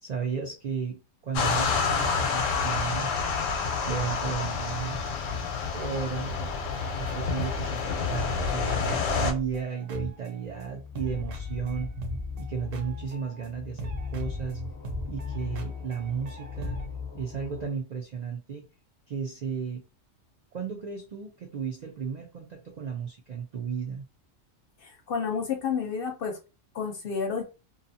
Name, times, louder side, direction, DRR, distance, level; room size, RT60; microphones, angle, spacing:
voice 1, 0.0-3.1 3.8-5.1 5.7-6.4 7.0-12.0 12.4-14.6 15.1-16.8 17.1-18.7 19.1-19.8 20.5-24.1, right 6 dB, 75° right, 2 dB, 0.3 m, -34 dB
sound 1, 1.3-9.3, left 5 dB, 85° left, 1.0 m, -28 dB
sound 2, 6.7-10.6 10.9-13.5 13.8-16.9, equal, 55° right, 0.7 m, -38 dB
sound 3, 10.4-17.7, left 7 dB, 20° left, 0.6 m, -39 dB
voice 2, 24.8-26.4 26.7-27.4, left 6 dB, 60° left, 4 dB, 0.7 m, -30 dB
2.5 x 2.3 x 2.6 m, 0.30 s
omnidirectional pair, 1.3 m